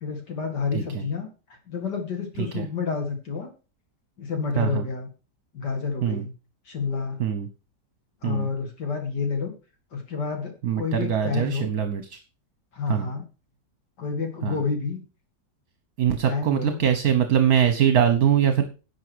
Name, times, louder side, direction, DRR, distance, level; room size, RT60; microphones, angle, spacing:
voice 1, 0.0-3.5 4.2-5.1 5.5-6.3 6.7-7.2 8.2-9.5 9.9-11.7 12.7-13.2 14.0-15.0 16.2-16.8, left 5 dB, 75° left, 4 dB, 2.7 m, -29 dB
voice 2, 10.6-12.2 12.9-13.1 14.4-14.6 16.0-18.6, right 9 dB, 60° right, 8 dB, 1.5 m, -22 dB
11.0 x 6.2 x 6.2 m, 0.33 s
omnidirectional pair, 1.8 m